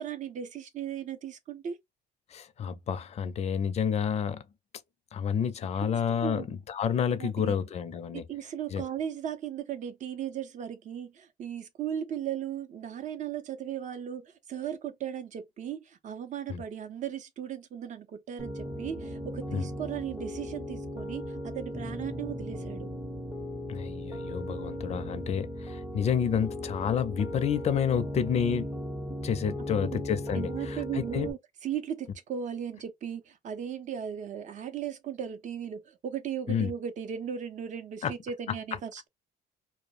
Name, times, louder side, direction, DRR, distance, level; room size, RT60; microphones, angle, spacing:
voice 1, 0.0-1.8 5.8-6.5 7.2-7.6 8.1-22.9 29.8-30.0 30.3-39.1, right 9 dB, 45° right, 0.6 m, -37 dB
voice 2, 2.3-4.4 5.1-8.2 8.7-8.8 16.5-16.6 19.5-19.7 23.7-28.8 29.2-31.3 36.5-36.7 38.0-38.1, left 7 dB, 40° left, 0.4 m, -29 dB
Piano, 18.4-31.3, equal, 10° right, 0.7 m, -37 dB
2.3 x 2.0 x 3.0 m
cardioid pair, 110°, 17 cm